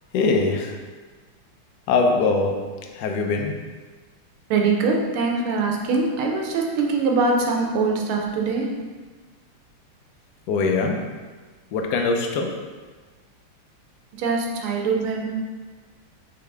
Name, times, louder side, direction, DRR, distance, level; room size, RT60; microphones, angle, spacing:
voice 1, 0.1-0.8 1.9-2.7 2.9-3.6 10.5-11.1 11.7-12.6, left 3 dB, 80° left, 2 dB, 0.9 m, -22 dB
voice 2, 4.5-8.7 14.2-15.3, right 4 dB, 80° right, 1 dB, 1.6 m, -23 dB
4.1 x 3.8 x 3.3 m, 1.3 s
omnidirectional pair, 2.3 m